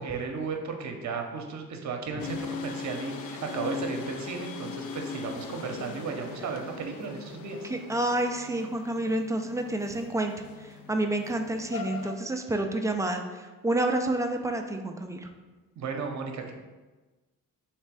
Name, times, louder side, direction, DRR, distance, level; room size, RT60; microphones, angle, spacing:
voice 1, 0.0-7.7 15.8-16.5, right 4 dB, 45° right, 4 dB, 0.8 m, -34 dB
sound 1, 2.2-12.2, left 5 dB, 65° left, 0.6 m, -40 dB
voice 2, 7.7-10.3 10.6-15.3, right 1 dB, 10° right, 4 dB, 0.4 m, -29 dB
3.2 x 3.2 x 4.7 m, 1.2 s
supercardioid pair, 70°, 39 cm